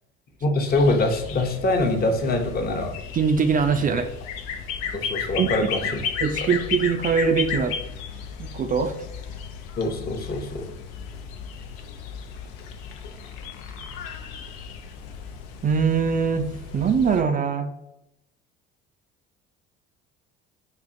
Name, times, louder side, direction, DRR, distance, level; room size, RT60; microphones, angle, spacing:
voice 1, 0.4-2.9 4.9-5.9 6.4-6.5 9.8-10.7, left 2 dB, 30° left, 3 dB, 0.7 m, -24 dB
sound 1, 0.7-17.2, left 6 dB, 75° left, 0.5 m, -34 dB
voice 2, 3.1-4.1 5.4-5.5 6.2-7.8 8.4-8.9 15.6-16.5 16.7-17.7, right 6 dB, 30° right, 7 dB, 0.4 m, -22 dB
5.1 x 2.4 x 2.6 m, 0.86 s
hypercardioid pair, 65°, 30 cm